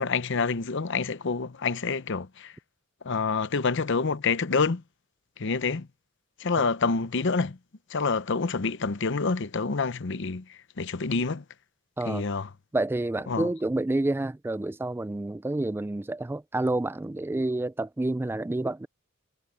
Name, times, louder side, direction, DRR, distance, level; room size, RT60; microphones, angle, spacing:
voice 1, 0.0-2.5 3.0-4.8 5.4-5.9 6.4-7.6 7.9-10.4 10.8-11.4 12.1-12.5 13.3-13.5, left 4 dB, 60° left, 0.8 m, -27 dB
voice 2, 12.7-18.9, right 2 dB, 10° right, 0.3 m, -29 dB
head